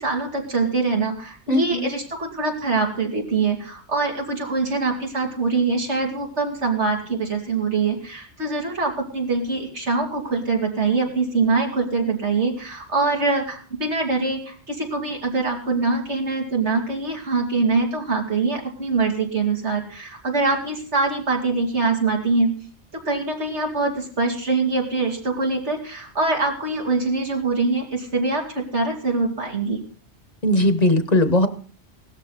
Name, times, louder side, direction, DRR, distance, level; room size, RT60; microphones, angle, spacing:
voice 1, 0.0-22.6 22.9-29.8, right 3 dB, 85° right, 1 dB, 3.0 m, -24 dB
voice 2, 1.5-1.9 30.4-31.5, left 1 dB, 40° left, 11 dB, 1.1 m, -18 dB
17.0 x 13.0 x 4.1 m, 0.43 s
omnidirectional pair, 1.1 m